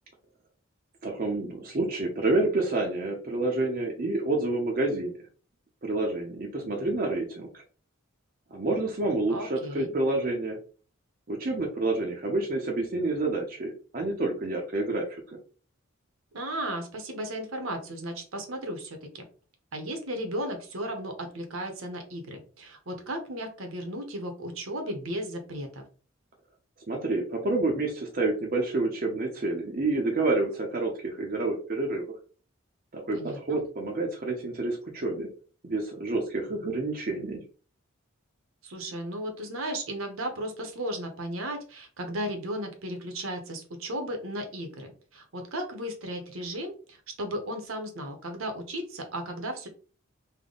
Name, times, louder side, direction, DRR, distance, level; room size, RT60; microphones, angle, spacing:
voice 1, 1.0-5.1 5.8-7.6 8.5-10.6 11.3-15.2 26.9-32.0 32.9-35.3 35.6-37.4, right 2 dB, 40° right, 1 dB, 0.6 m, -28 dB
voice 2, 9.3-9.9 16.3-19.2 19.7-25.8 33.1-33.6 38.6-49.7, right 1 dB, 70° right, 5 dB, 0.9 m, -35 dB
3.4 x 2.1 x 3.8 m, 0.39 s
head